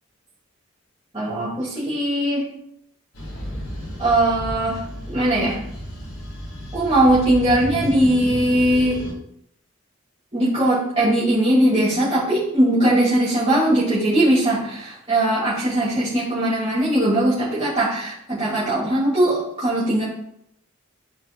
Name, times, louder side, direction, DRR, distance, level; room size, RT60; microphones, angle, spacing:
voice 1, 1.1-2.5 4.0-4.8 5.1-5.6 6.7-9.1 10.3-20.0, right 1 dB, 25° right, -10 dB, 2.1 m, -20 dB
sound 1, 3.1-9.1, equal, 85° left, 3.0 m, -33 dB
13.0 x 4.4 x 2.2 m, 0.74 s
head